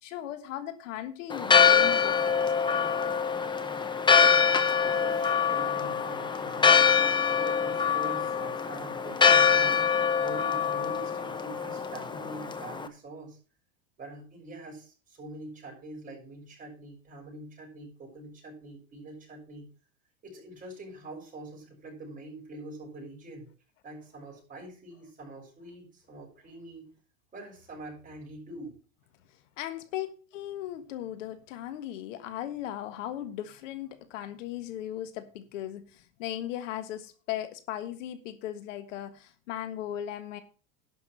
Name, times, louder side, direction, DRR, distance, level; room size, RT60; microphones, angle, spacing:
voice 1, 0.0-2.5 29.6-40.4, left 12 dB, 70° left, 1.5 m, -37 dB
Church bell, 1.3-12.9, left 6 dB, 10° left, 0.9 m, -24 dB
voice 2, 4.2-6.8 7.3-9.8 10.2-13.4 14.0-19.7 20.2-23.5 23.8-26.9 27.3-28.7, right 2 dB, 20° right, 6.3 m, -44 dB
11.5 x 6.3 x 6.1 m
supercardioid pair, 130°, 38 cm